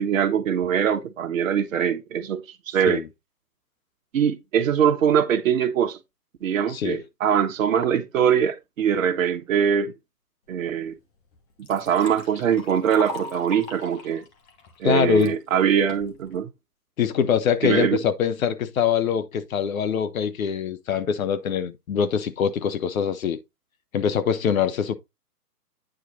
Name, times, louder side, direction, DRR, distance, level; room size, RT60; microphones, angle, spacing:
voice 1, 0.0-3.0 4.1-6.0 6.4-9.9 10.5-11.0 11.7-14.2 14.8-16.5 17.6-18.0, right 8 dB, 55° right, 1.4 m, -22 dB
voice 2, 6.7-7.0 14.8-15.3 17.0-23.4 23.9-25.0, left 7 dB, 55° left, 1.1 m, -23 dB
Liquid, 10.8-10.9 11.3-15.3 15.9-16.4, left 3 dB, 30° left, 2.0 m, -39 dB
9.3 x 4.4 x 4.1 m
hypercardioid pair, 135°, 48 cm